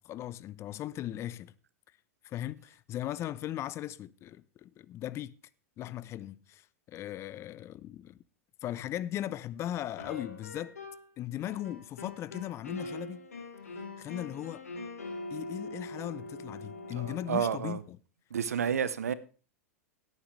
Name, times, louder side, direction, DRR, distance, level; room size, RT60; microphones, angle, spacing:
voice 1, 0.0-1.5 2.2-5.3 5.8-8.2 8.6-10.8 11.2-13.3 14.0-14.6 15.3-18.0, left 12 dB, 35° left, 0.7 m, -38 dB
sound 1, 10.0-11.1 11.4-17.3, left 2 dB, 90° left, 4.9 m, -43 dB
voice 2, 16.9-17.8 18.3-19.1, right 7 dB, 80° right, 0.9 m, -30 dB
17.0 x 9.3 x 3.3 m
hypercardioid pair, 105°, 8 cm